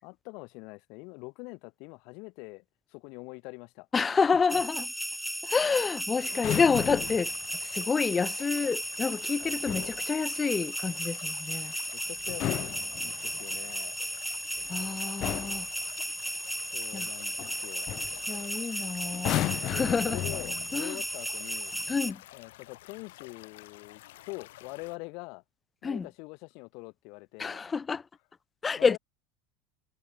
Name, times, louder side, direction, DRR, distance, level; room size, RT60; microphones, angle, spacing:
voice 1, 0.0-2.6 2.9-3.9 4.5-4.6 11.9-12.7 13.0-13.9 16.5-17.9 19.6-21.7 22.3-25.4 25.8-27.6 28.8-29.0, left 29 dB, 60° left, 5.2 m, -44 dB
voice 2, 3.9-4.9 5.4-7.3 7.6-11.7 14.7-15.7 16.9-17.1 18.3-20.2 20.7-21.0 21.9-22.2 25.8-26.1 27.4-28.0 28.6-29.0, left 5 dB, 20° left, 1.9 m, -28 dB
sound 1, 4.5-22.1, equal, ahead, 2.0 m, -35 dB
sound 2, 6.1-25.0, left 17 dB, 85° left, 2.8 m, -50 dB
sound 3, 6.3-7.3 9.4-10.0 12.2-13.5 14.6-14.8 15.2-15.7 17.4-17.6 17.9-18.2 19.1-20.8 21.7-22.0, left 14 dB, 45° left, 0.5 m, -34 dB
supercardioid pair, 135°, 0 cm